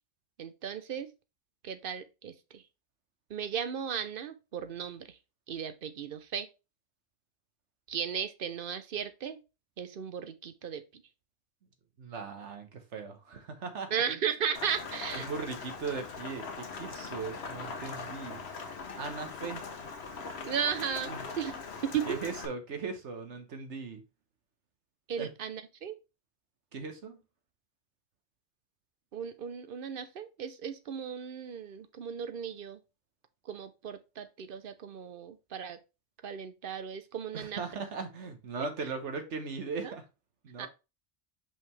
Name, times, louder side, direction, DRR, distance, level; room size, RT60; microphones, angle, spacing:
voice 1, 0.4-1.1 1.6-2.6 3.3-5.2 5.5-6.5 7.9-9.4 9.8-10.8 13.9-15.3 20.4-22.2 25.1-26.0 29.1-32.8 33.5-35.8 36.2-37.6 39.8-39.9 40.6-40.7, right 7 dB, 55° right, 0.8 m, -36 dB
voice 2, 12.0-14.2 15.1-18.4 19.0-19.6 21.1-21.2 22.1-24.0 25.2-25.3 26.7-27.2 37.3-40.0 40.4-40.7, right 4 dB, 90° right, 1.4 m, -39 dB
Rain, 14.5-22.5, left 4 dB, 70° left, 1.2 m, -41 dB
5.5 x 5.5 x 3.2 m
omnidirectional pair, 1.2 m